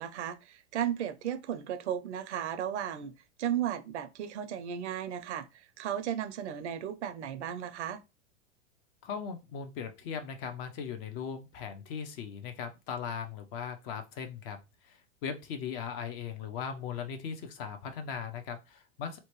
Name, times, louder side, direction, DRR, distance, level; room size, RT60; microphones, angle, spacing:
voice 1, 0.0-3.1 3.4-8.0, right 10 dB, 65° right, 0.5 m, -35 dB
voice 2, 9.0-19.2, left 7 dB, 45° left, 0.7 m, -39 dB
2.8 x 2.2 x 3.0 m
hypercardioid pair, 95°, 37 cm